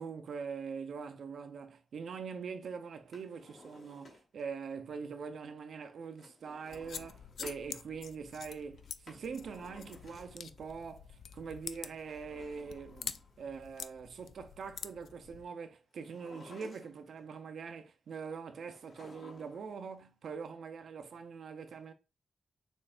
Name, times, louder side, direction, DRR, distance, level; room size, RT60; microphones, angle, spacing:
voice 1, 0.0-21.9, right 5 dB, 75° right, 0.7 m, -43 dB
Drawer open or close, 3.0-4.5 6.2-7.7 8.8-10.6 11.9-13.5 15.9-17.2 18.6-19.7 20.0-20.1, left 2 dB, 55° left, 1.8 m, -55 dB
sound 1, 6.7-15.5, left 7 dB, 80° left, 0.3 m, -47 dB
6.3 x 3.2 x 2.4 m
wide cardioid pair, 125°, 0 cm